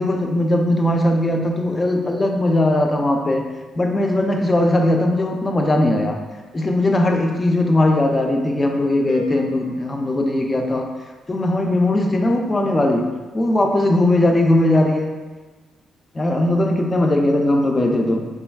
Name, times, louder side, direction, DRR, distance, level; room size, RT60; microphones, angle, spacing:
voice 1, 0.0-3.4 3.8-6.2 6.5-10.9 11.3-15.1 16.1-18.3, left 1 dB, 25° left, 2 dB, 0.3 m, -19 dB
sound 1, 9.1-11.2, left 3 dB, 90° left, 0.7 m, -38 dB
3.1 x 2.3 x 2.2 m, 1.3 s
cardioid pair, 90°, 0 cm